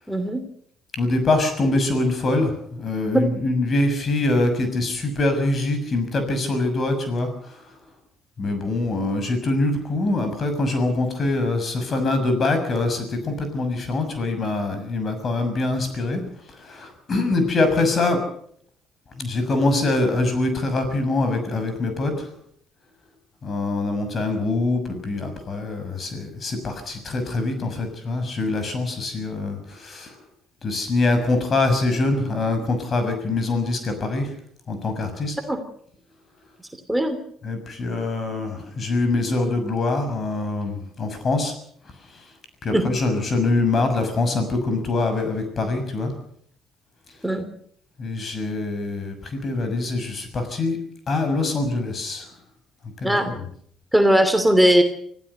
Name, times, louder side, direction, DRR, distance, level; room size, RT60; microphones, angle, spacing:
voice 1, 0.1-0.4 3.1-3.2 35.5-35.6 36.9-37.2 42.7-42.8 47.2-47.5 53.0-53.3 53.9-54.8, equal, 5° right, 7 dB, 2.9 m, -18 dB
voice 2, 1.0-7.6 8.4-16.2 16.5-18.2 19.2-22.3 23.4-30.2 30.6-34.3 34.7-35.4 37.4-41.5 42.6-46.1 48.0-50.8 51.1-52.3 53.0-53.4, left 2 dB, 45° left, 8 dB, 6.4 m, -24 dB
25.5 x 15.5 x 6.8 m, 0.65 s
hypercardioid pair, 60°, 0 cm